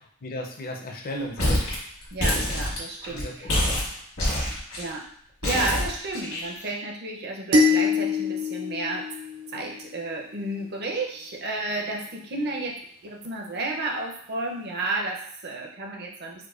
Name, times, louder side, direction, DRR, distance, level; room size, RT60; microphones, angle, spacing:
voice 1, 0.2-1.8 3.1-3.9 4.3-4.4, left 1 dB, 45° left, 1 dB, 0.5 m, -36 dB
sound 1, 1.4-1.8 2.0-3.2 3.5-4.9 5.4-6.7, left 1 dB, 75° left, 1.4 m, -26 dB
voice 2, 2.1-3.3 4.8-5.0 5.4-9.0 9.5-12.7 13.2-15.1 15.4-16.3, right 2 dB, 50° right, 0 dB, 0.6 m, -31 dB
sound 2, 7.5-9.9, left 3 dB, 85° right, 0.9 m, -24 dB
4.5 x 2.2 x 2.4 m, 0.64 s
head